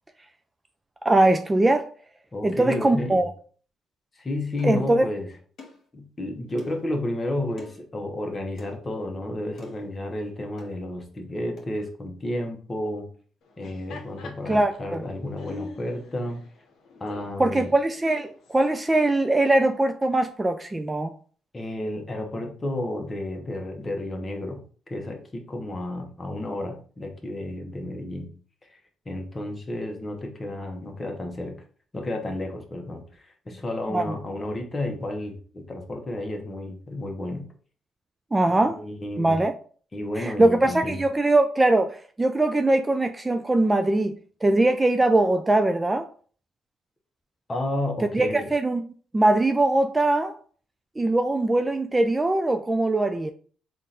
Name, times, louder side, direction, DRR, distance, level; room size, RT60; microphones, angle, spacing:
voice 1, 1.0-1.9 2.4-3.3 4.6-5.1 14.5-15.0 17.4-21.1 33.9-34.0 38.3-38.8 39.2-39.5 40.2-46.1 48.1-48.8 49.1-50.4 51.0-53.3, right 2 dB, 20° right, 0.3 m, -21 dB
voice 2, 2.3-3.3 4.1-5.3 5.9-13.1 13.6-16.4 17.0-17.7 21.5-24.6 24.9-28.3 29.0-31.6 31.9-37.5 38.5-39.4 39.9-41.0 47.5-48.5, left 1 dB, 25° left, 1.0 m, -32 dB
sound 1, 4.6-4.8 5.6-5.8 6.6-6.9 7.6-7.8 8.6-8.7 9.6-9.9 10.6-10.8 11.6-11.7, left 3 dB, 55° left, 1.5 m, -45 dB
Laughter, 13.4-18.7, left 3 dB, 70° left, 0.8 m, -44 dB
3.7 x 2.5 x 4.2 m
cardioid pair, 90°, 0 cm